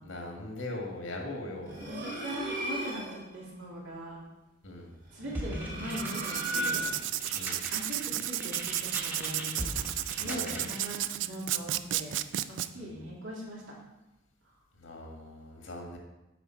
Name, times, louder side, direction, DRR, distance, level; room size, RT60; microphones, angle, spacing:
voice 1, 0.0-1.9 4.6-4.9 7.3-7.6 10.2-10.7 12.7-12.9 14.8-16.0, left 2 dB, 85° left, 1 dB, 1.6 m, -40 dB
sound 1, 1.7-3.2 5.1-7.2, right 1 dB, 50° right, 2.7 m, -36 dB
voice 2, 1.9-4.2 5.1-6.8 7.7-9.6 10.2-12.2 12.5-13.6, right 1 dB, 85° right, -4 dB, 2.5 m, -40 dB
sound 2, 5.3-11.0, equal, 10° right, 0.9 m, -40 dB
Writing, 5.9-12.7, right 13 dB, 70° right, 0.3 m, -33 dB
8.1 x 5.2 x 4.5 m, 0.99 s
head